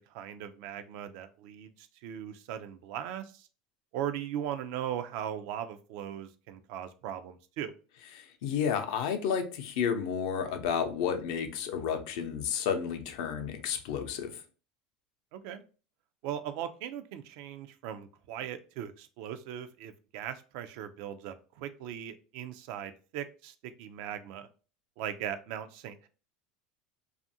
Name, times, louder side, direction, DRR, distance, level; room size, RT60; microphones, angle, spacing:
voice 1, 0.0-3.5 3.9-7.7 15.3-15.6 16.2-24.5 25.0-26.1, right 10 dB, 70° right, 10 dB, 0.3 m, -39 dB
voice 2, 8.2-14.4, left 7 dB, 75° left, 6 dB, 0.5 m, -31 dB
2.6 x 2.4 x 2.6 m, 0.36 s
supercardioid pair, 100°, 4 cm